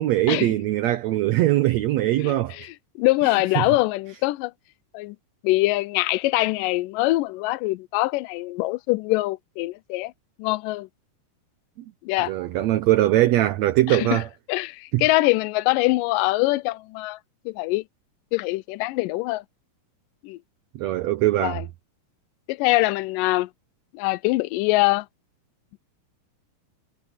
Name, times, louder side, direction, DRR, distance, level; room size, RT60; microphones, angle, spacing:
voice 1, 0.0-2.6 3.6-3.7 12.2-14.3 14.9-15.0 20.7-21.6, right 15 dB, 85° right, 1.5 m, -21 dB
voice 2, 2.2-4.5 4.9-5.2 5.4-10.1 10.4-10.9 12.0-12.3 13.9-14.2 14.5-17.2 17.5-17.8 18.3-19.4 20.2-20.4 21.4-21.7 22.5-23.5 23.9-25.1, left 20 dB, 80° left, 2.1 m, -23 dB
omnidirectional pair, 4.1 m